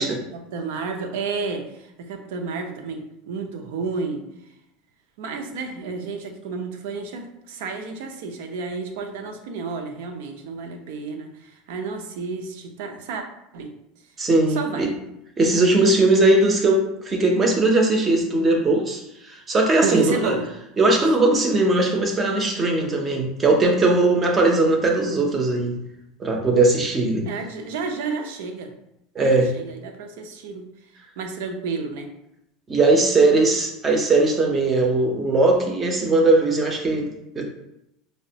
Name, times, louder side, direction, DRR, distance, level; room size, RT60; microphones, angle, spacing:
voice 1, 0.3-4.5 5.2-13.2 13.5-13.7 14.5-14.9 19.8-20.5 27.3-28.7 29.2-30.6 31.2-32.1, right 4 dB, 75° right, 5 dB, 0.6 m, -31 dB
voice 2, 14.2-14.9 15.4-20.3 20.8-25.8 26.2-27.3 29.2-29.5 32.7-37.5, right 2 dB, 20° right, 1 dB, 0.5 m, -19 dB
4.7 x 2.1 x 2.7 m, 0.83 s
supercardioid pair, 160°, 0 cm